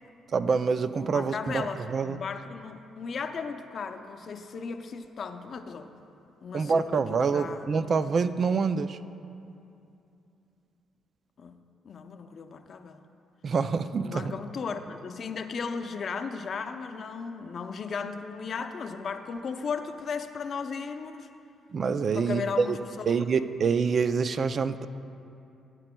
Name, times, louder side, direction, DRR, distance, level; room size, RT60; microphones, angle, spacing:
voice 1, 0.3-2.2 6.5-9.0 13.4-14.3 21.7-22.8 23.1-24.9, right 5 dB, 50° right, 11 dB, 0.3 m, -26 dB
voice 2, 1.0-5.9 6.4-7.6 11.4-13.0 14.0-21.3 22.1-23.5, left 5 dB, 50° left, 7 dB, 0.6 m, -36 dB
16.5 x 9.7 x 2.2 m, 2.7 s
cardioid pair, 90°, 0 cm